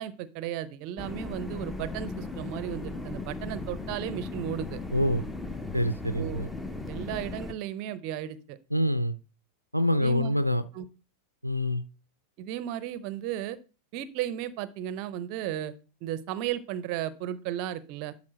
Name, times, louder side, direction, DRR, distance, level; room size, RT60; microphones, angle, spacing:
voice 1, 0.0-4.8 6.2-6.5 6.9-8.6 9.9-10.4 10.7-10.9 12.4-13.6 13.9-15.7 16.0-18.1, right 11 dB, 45° right, 16 dB, 0.6 m, -34 dB
sound 1, 1.0-7.5, left 3 dB, 5° left, 0.7 m, -37 dB
voice 2, 4.9-5.2 5.7-6.5 8.7-9.2 9.7-10.7 11.4-11.8, left 1 dB, 90° right, 13 dB, 0.4 m, -26 dB
12.0 x 4.2 x 4.3 m, 0.35 s
figure-of-eight pair, 90°, 0 cm